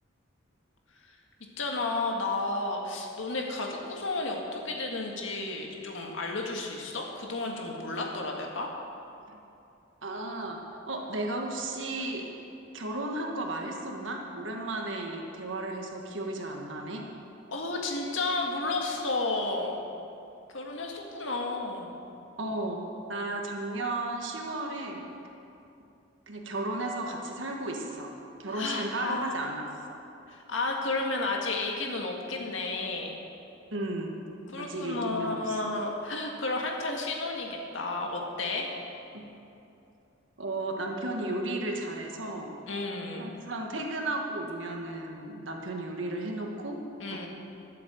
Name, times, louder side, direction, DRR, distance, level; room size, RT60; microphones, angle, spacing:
voice 1, 1.6-8.7 17.5-19.8 20.5-21.9 28.5-29.7 30.3-33.2 34.5-38.7 42.7-43.3 47.0-47.3, left 2 dB, 85° left, 0 dB, 1.8 m, -32 dB
voice 2, 10.0-10.6 10.9-12.2 12.7-17.0 22.4-22.8 23.1-25.1 26.3-28.1 28.4-30.0 33.7-34.2 34.6-35.6 39.1-39.2 40.4-42.5 43.2-47.3, right 2 dB, 80° right, 1 dB, 1.4 m, -34 dB
12.5 x 7.7 x 7.6 m, 2.7 s
head